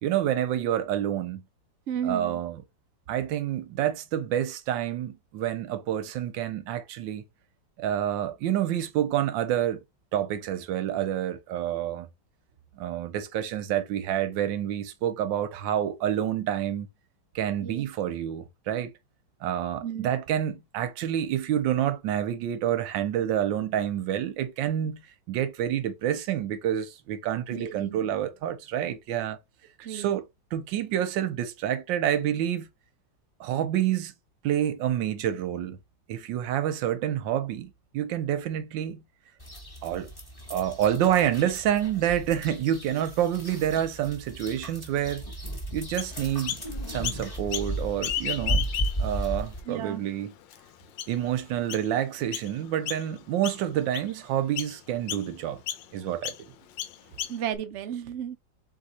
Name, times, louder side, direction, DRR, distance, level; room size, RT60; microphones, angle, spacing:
voice 1, 0.0-1.4 2.0-2.6 3.1-7.2 7.8-9.8 10.1-12.1 12.8-16.9 17.3-18.9 19.4-29.4 29.9-30.2 30.5-32.7 33.4-34.1 34.4-35.8 36.1-39.0 39.8-40.1 40.5-45.2 45.7-46.6 46.9-48.6 49.0-50.3 51.1-55.6 55.9-56.3, right 11 dB, 85° right, 1.4 m, -28 dB
voice 2, 1.9-2.4 17.6-17.8 19.8-20.1 27.5-28.0 29.8-30.1 49.7-50.0 57.3-58.4, right 9 dB, 65° right, 0.7 m, -33 dB
sound 1, 39.4-49.6, right 1 dB, 15° left, 1.1 m, -35 dB
Chirp tweet, 46.0-46.7 47.0-47.7 48.0-49.2 49.7-49.8 50.5-50.6 51.0-51.3 51.7-51.9 52.3-52.5 52.9-53.2 53.4-54.1 54.6-54.8 55.1-55.3 55.7-55.9 56.2-56.4 56.8-57.6, left 11 dB, 80° left, 1.3 m, -33 dB
3.7 x 3.2 x 4.1 m
omnidirectional pair, 2.0 m